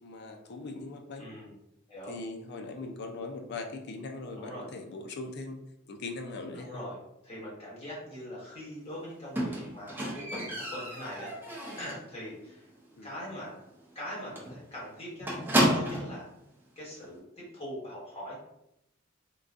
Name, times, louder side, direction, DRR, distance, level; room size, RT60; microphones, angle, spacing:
voice 1, 0.0-1.3 2.1-5.6 5.9-6.8 13.0-13.1, left 3 dB, 55° left, 4 dB, 0.4 m, -40 dB
voice 2, 1.2-1.5 1.9-2.1 4.4-4.7 6.5-7.0 7.2-12.7 13.0-13.6 13.9-15.3 15.7-16.3 16.7-18.4, equal, 30° left, -6 dB, 1.3 m, -42 dB
Squeak, 9.4-12.1 12.5-12.9 13.1-13.2 13.6-13.7 14.0-14.1 14.4-16.2 17.0-17.1, equal, 10° right, 0.6 m, -31 dB
3.8 x 2.2 x 2.4 m, 0.84 s
head